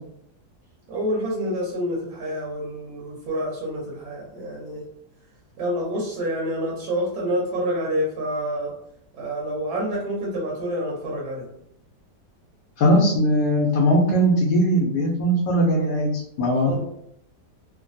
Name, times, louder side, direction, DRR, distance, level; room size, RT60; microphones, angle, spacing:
voice 1, 0.9-4.8 5.6-8.7 9.2-11.5 16.7-16.8, equal, 70° right, -3 dB, 1.2 m, -27 dB
voice 2, 12.8-16.7, equal, 75° left, -1 dB, 1.1 m, -20 dB
3.1 x 2.1 x 2.6 m, 0.74 s
omnidirectional pair, 1.8 m